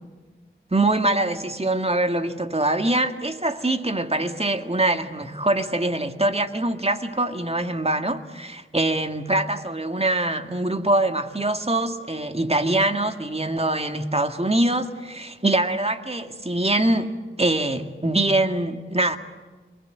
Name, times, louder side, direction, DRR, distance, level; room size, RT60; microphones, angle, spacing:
voice 1, 0.7-19.2, right 2 dB, 30° right, 2.1 m, -23 dB
27.0 x 23.0 x 9.4 m
wide cardioid pair, 40°, 21 cm